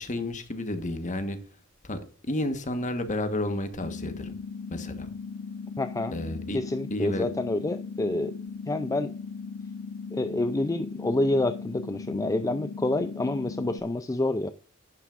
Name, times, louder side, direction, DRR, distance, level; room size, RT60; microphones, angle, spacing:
voice 1, 0.0-1.4 1.8-4.3 4.7-5.1 6.1-6.6 6.9-7.3, left 1 dB, 40° left, 1.3 m, -31 dB
sound 1, 3.8-13.8, left 5 dB, 75° left, 0.6 m, -38 dB
voice 2, 5.8-6.1 6.5-8.3 8.7-9.1 10.1-14.5, left 2 dB, 15° left, 0.4 m, -28 dB
11.5 x 9.3 x 2.5 m
head